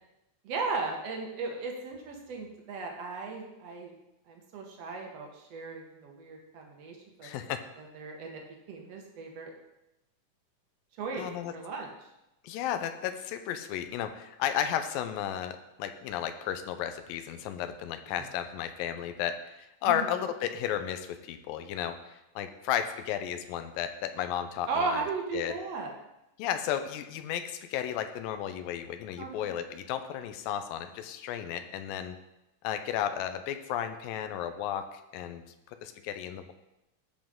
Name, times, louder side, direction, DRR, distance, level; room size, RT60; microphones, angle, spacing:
voice 1, 0.4-3.9 4.3-7.3 7.8-8.4 8.7-9.5 11.0-11.3 11.5-11.9 19.8-20.1 24.7-25.9 29.2-29.5, right 4 dB, 65° right, 1 dB, 1.7 m, -36 dB
voice 2, 7.2-7.6 11.2-11.5 12.4-25.0 25.3-25.5 26.4-32.2 32.6-35.4 35.8-36.5, left 10 dB, 85° left, 8 dB, 2.4 m, -33 dB
13.0 x 5.2 x 3.6 m, 0.92 s
omnidirectional pair, 4.0 m